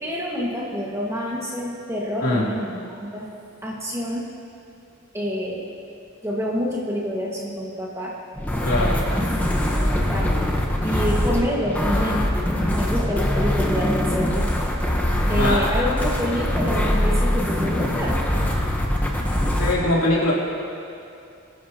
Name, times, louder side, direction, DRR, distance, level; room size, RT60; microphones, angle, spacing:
voice 1, 0.0-3.3 3.6-4.2 5.1-5.6 6.2-8.1 9.1-10.5 10.7-12.3 12.7-14.5 15.3-18.2, equal, 15° right, -4 dB, 1.7 m, -27 dB
sound 1, 8.4-19.7, left 1 dB, 5° left, 1.0 m, -22 dB
voice 2, 8.6-9.0 15.3-15.9 19.6-20.3, left 1 dB, 85° left, -5 dB, 3.1 m, -22 dB
22.5 x 10.5 x 2.9 m, 2.6 s
head